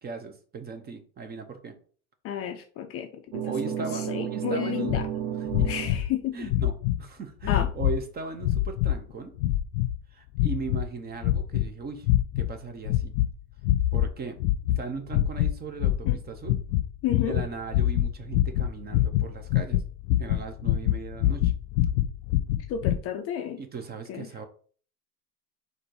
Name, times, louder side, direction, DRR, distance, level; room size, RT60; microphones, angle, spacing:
voice 1, 0.0-1.7 3.4-5.0 5.4-5.7 6.3-9.3 10.1-12.1 12.4-13.2 13.9-14.4 14.7-16.6 17.1-19.8 20.2-21.5 23.6-24.5, right 4 dB, 20° right, 8 dB, 0.5 m, -38 dB
voice 2, 2.2-3.5 3.9-5.0 5.6-6.5 7.5-7.7 16.1-16.2 17.0-17.4 22.7-23.6 24.1-24.3, left 9 dB, 35° left, 5 dB, 0.4 m, -31 dB
sound 1, 3.3-6.0, right 10 dB, 90° right, 0.7 m, -32 dB
sound 2, 4.9-5.1 5.5-6.1 6.4-7.0 7.4-8.0 8.4-9.0 9.4-10.0 10.3-10.9 11.2-11.7 12.0-12.5 12.9-13.3 13.6-14.1 14.4-14.8 15.1-15.5 15.8-23.0, left 13 dB, 70° left, 0.7 m, -25 dB
4.2 x 2.6 x 4.6 m, 0.44 s
supercardioid pair, 115°, 46 cm